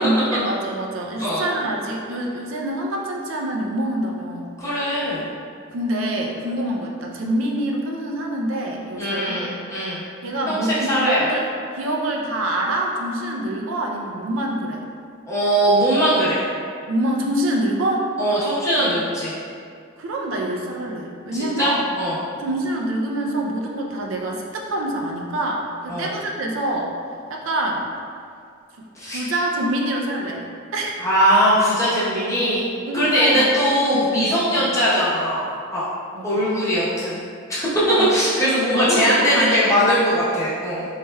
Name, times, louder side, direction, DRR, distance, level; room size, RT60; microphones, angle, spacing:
voice 1, 0.0-4.5 5.7-9.4 10.2-11.5 11.7-14.8 16.9-18.1 20.0-21.9 22.4-26.9 27.3-27.9 28.8-30.5 30.7-31.0 32.9-33.5 33.9-34.3 34.6-34.7 36.1-36.5 38.0-38.1 38.7-39.6, right 1 dB, 70° right, 0 dB, 0.4 m, -25 dB
voice 2, 4.6-5.2 9.0-10.0 10.5-11.2 15.3-16.4 18.2-19.3 21.3-21.7 22.0-22.1 25.9-26.1 29.0-29.4 31.0-32.7 32.9-35.9 36.2-37.2 37.5-40.9, equal, 15° left, -10 dB, 0.9 m, -20 dB
4.1 x 3.2 x 2.3 m, 2.3 s
head